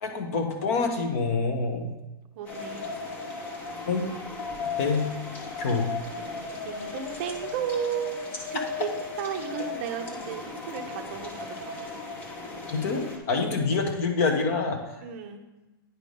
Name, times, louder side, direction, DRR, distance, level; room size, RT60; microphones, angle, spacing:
voice 1, 0.0-2.0 3.8-4.2 4.8-5.1 5.6-6.0 8.5-8.6 12.7-15.0, left 4 dB, 40° left, 4 dB, 0.9 m, -27 dB
voice 2, 2.3-2.9 6.5-8.1 8.5-11.8 15.0-15.4, right 8 dB, 35° right, 5 dB, 0.6 m, -34 dB
sound 1, 2.5-13.2, left 4 dB, 15° left, 0.6 m, -36 dB
9.2 x 3.3 x 5.2 m, 1.1 s
supercardioid pair, 175°, 12 cm